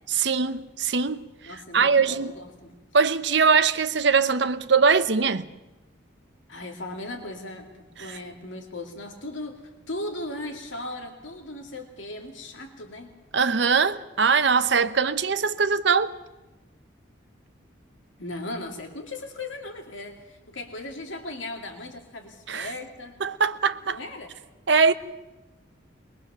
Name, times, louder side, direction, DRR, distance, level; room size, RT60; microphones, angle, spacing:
voice 1, 0.1-1.2 1.7-2.3 2.9-5.5 13.3-16.1 22.5-22.7 23.2-24.0 24.7-24.9, right 5 dB, 65° right, 0.9 m, -21 dB
voice 2, 1.5-2.8 6.5-9.6 9.9-13.1 18.2-23.2 23.9-24.3, left 2 dB, 80° left, 2.4 m, -37 dB
22.0 x 21.5 x 6.8 m
head